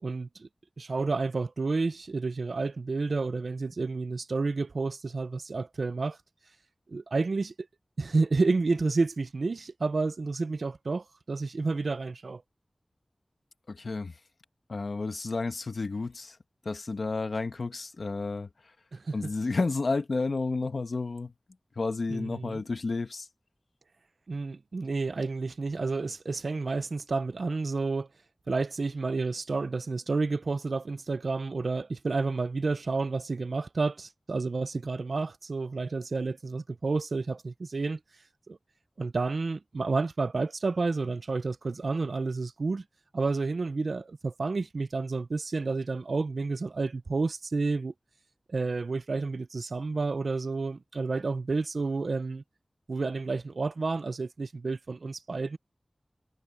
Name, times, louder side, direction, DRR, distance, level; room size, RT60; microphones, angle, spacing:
voice 1, 0.0-0.5 0.8-6.2 6.9-7.5 8.0-12.4 18.9-19.1 22.1-22.6 24.3-28.1 28.5-38.0 38.5-38.6 39.0-42.8 43.1-47.9 48.5-52.4 52.9-55.6, right 3 dB, 80° right, 0.6 m, -30 dB
voice 2, 13.7-14.2 14.7-16.4 16.6-18.7 19.1-21.3 21.7-23.3, left 3 dB, 75° left, 1.4 m, -31 dB
wide cardioid pair, 65°, 0 cm